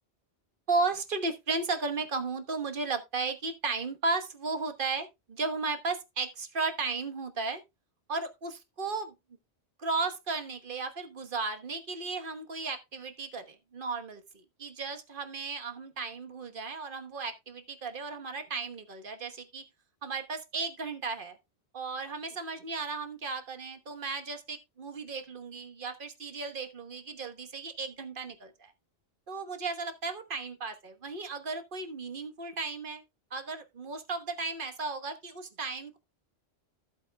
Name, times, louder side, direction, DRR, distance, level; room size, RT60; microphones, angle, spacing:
voice 1, 0.7-7.6 8.1-9.1 9.8-19.6 20.0-21.4 21.7-28.7 29.3-33.0 33.3-36.0, right 4 dB, 55° right, 1.4 m, -35 dB
14.5 x 8.0 x 2.2 m
omnidirectional pair, 1.1 m